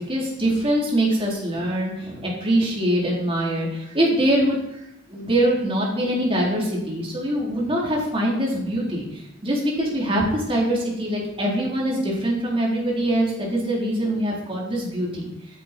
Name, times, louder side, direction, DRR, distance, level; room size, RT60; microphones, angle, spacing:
voice 1, 0.0-4.8 5.1-15.3, right 1 dB, 30° right, -3 dB, 4.1 m, -23 dB
13.0 x 9.2 x 4.6 m, 0.87 s
head